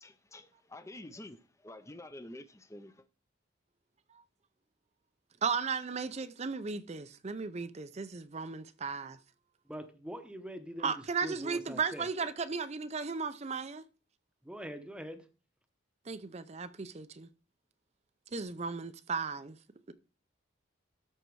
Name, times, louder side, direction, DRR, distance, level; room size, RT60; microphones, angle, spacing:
voice 1, 0.0-3.0, left 1 dB, 15° left, 0.6 m, -49 dB
voice 2, 5.4-9.2 10.8-13.8 16.1-17.3 18.3-19.6 19.9-20.0, right 5 dB, 35° right, 0.5 m, -35 dB
voice 3, 9.7-10.9 11.2-12.1 14.4-15.2, equal, 5° right, 0.9 m, -43 dB
13.0 x 4.4 x 4.7 m
head